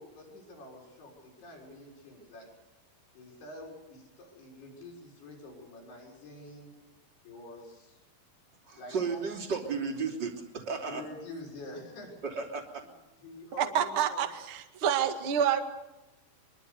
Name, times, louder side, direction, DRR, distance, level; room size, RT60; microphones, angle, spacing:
voice 1, 0.0-2.5 3.1-6.7 7.2-8.0 8.8-9.2 9.5-9.6 10.9-12.1 13.2-14.2, left 2 dB, 55° left, 0 dB, 8.2 m, -47 dB
voice 2, 8.6-11.0 12.2-12.8, right 5 dB, 25° right, -7 dB, 3.0 m, -34 dB
voice 3, 13.6-15.6, right 9 dB, 50° right, 6 dB, 1.5 m, -28 dB
24.0 x 24.0 x 6.9 m, 1.0 s
omnidirectional pair, 5.5 m